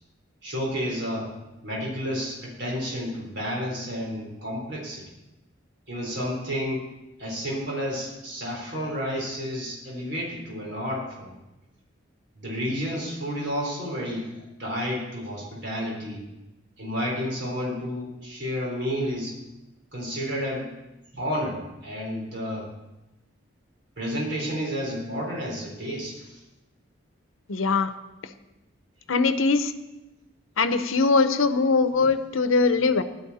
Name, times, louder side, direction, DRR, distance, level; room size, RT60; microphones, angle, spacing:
voice 1, 0.4-1.3 1.6-5.0 5.9-6.9 7.2-11.3 12.4-16.2 16.8-19.4 19.9-20.7 21.1-22.7 24.0-26.4, equal, 55° right, -3 dB, 4.0 m, -31 dB
voice 2, 27.5-27.9 29.1-29.7 30.6-33.0, left 4 dB, 85° left, 11 dB, 0.8 m, -21 dB
16.0 x 12.0 x 4.2 m, 0.99 s
head